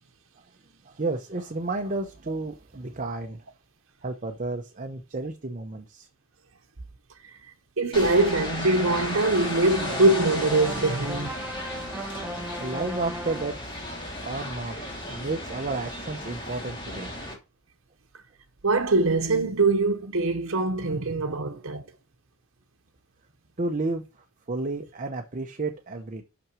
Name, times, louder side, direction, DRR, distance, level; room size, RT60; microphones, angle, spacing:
voice 1, 0.9-3.4 4.0-6.1 12.6-13.6 14.2-14.8 15.1-17.1 23.6-24.0 24.5-26.2, right 3 dB, 35° right, 0.8 m, -31 dB
voice 2, 7.8-11.4 18.6-21.8, right 2 dB, 65° right, 1.0 m, -23 dB
sound 1, 7.9-17.3, left 1 dB, 25° left, 2.8 m, -35 dB
sound 2, 9.7-13.7, right 1 dB, 5° right, 1.0 m, -37 dB
6.1 x 6.0 x 6.1 m
head